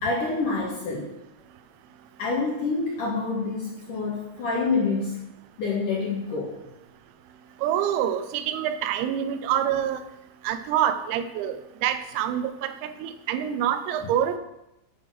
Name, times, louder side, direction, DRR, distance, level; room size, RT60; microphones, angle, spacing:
voice 1, 0.0-1.1 2.2-5.3 5.6-6.6, left 4 dB, 60° left, -3 dB, 2.2 m, -27 dB
voice 2, 7.6-10.0 10.5-14.4, right 10 dB, 90° right, 10 dB, 3.7 m, -26 dB
11.5 x 9.6 x 6.2 m, 0.90 s
omnidirectional pair, 6.0 m